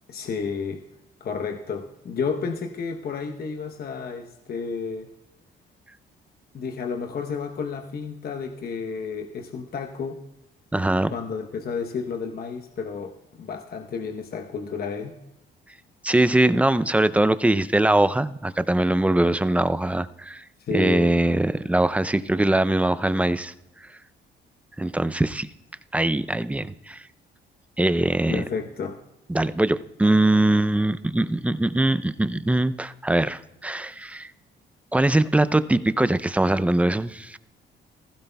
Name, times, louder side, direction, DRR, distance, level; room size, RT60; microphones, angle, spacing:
voice 1, 0.1-0.8 1.2-5.1 6.5-10.2 11.1-15.2 20.6-21.1 28.3-29.0, left 5 dB, 50° left, 4 dB, 0.9 m, -31 dB
voice 2, 10.7-11.1 16.0-20.4 20.7-23.5 24.8-25.5 25.9-27.0 27.8-28.4 29.3-34.3 34.9-37.4, right 1 dB, 5° right, 14 dB, 0.4 m, -22 dB
16.0 x 15.0 x 2.3 m, 0.92 s
cardioid pair, 90°, 20 cm